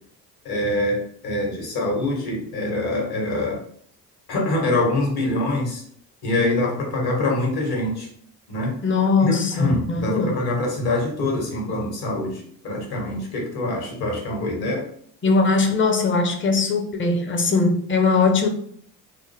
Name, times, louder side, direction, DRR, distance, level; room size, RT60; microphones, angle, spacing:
voice 1, 0.4-3.6 4.3-5.8 6.2-8.1 8.5-8.7 9.2-14.8, left 2 dB, 50° left, 0 dB, 1.5 m, -24 dB
voice 2, 8.8-10.4 15.2-18.5, left 4 dB, 25° left, 5 dB, 0.8 m, -20 dB
4.3 x 2.1 x 3.4 m, 0.62 s
hypercardioid pair, 50°, 49 cm